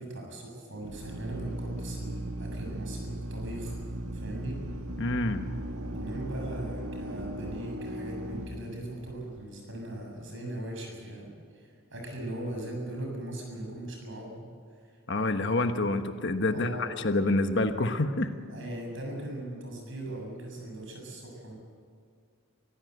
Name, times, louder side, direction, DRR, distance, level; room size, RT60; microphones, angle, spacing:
voice 1, 0.0-3.8 4.1-4.6 5.9-14.5 14.8-14.9 16.5-16.9 18.5-21.6, right 1 dB, 60° right, 1 dB, 7.3 m, -39 dB
Drill, 0.8-9.4, right 1 dB, 90° right, 2.0 m, -37 dB
voice 2, 5.0-5.5 15.1-18.3, left 2 dB, 55° left, 7 dB, 1.3 m, -27 dB
24.0 x 16.0 x 8.0 m, 2.1 s
head